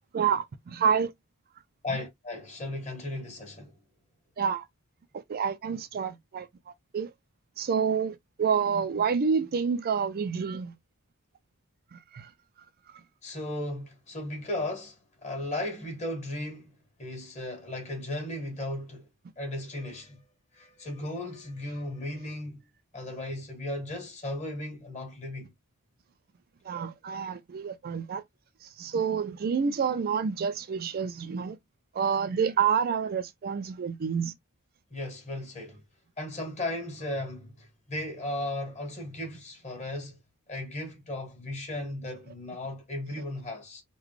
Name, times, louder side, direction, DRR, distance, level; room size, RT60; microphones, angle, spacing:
voice 1, 0.1-0.4 0.7-1.1 4.4-4.6 5.3-6.5 6.9-7.1 7.6-10.7 11.9-12.3 26.7-28.2 28.8-31.6 31.9-34.3, right 6 dB, 45° right, 0.4 m, -28 dB
voice 2, 1.8-3.7 13.2-15.0 15.2-16.7 17.0-19.1 19.4-20.2 20.5-22.6 22.9-25.5 34.9-35.8 36.2-40.2 40.5-43.8, left 1 dB, 35° left, 1.6 m, -36 dB
3.8 x 2.2 x 3.1 m
head